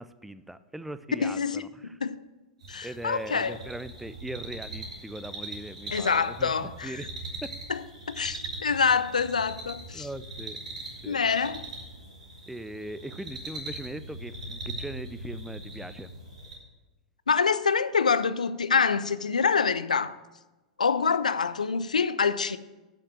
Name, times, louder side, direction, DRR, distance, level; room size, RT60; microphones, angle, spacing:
voice 1, 0.0-2.0 2.8-7.1 7.4-7.6 9.9-10.6 11.0-11.2 12.5-16.1, right 1 dB, 5° right, 0.4 m, -40 dB
voice 2, 1.2-1.6 2.0-2.2 2.7-3.5 5.9-7.0 7.7-7.8 8.1-10.1 11.1-11.6 17.3-20.2 20.8-22.6, left 5 dB, 75° left, 0.4 m, -26 dB
sound 1, 2.6-16.5, right 2 dB, 65° right, 3.0 m, -41 dB
7.5 x 6.6 x 7.3 m
figure-of-eight pair, 95°, 4 cm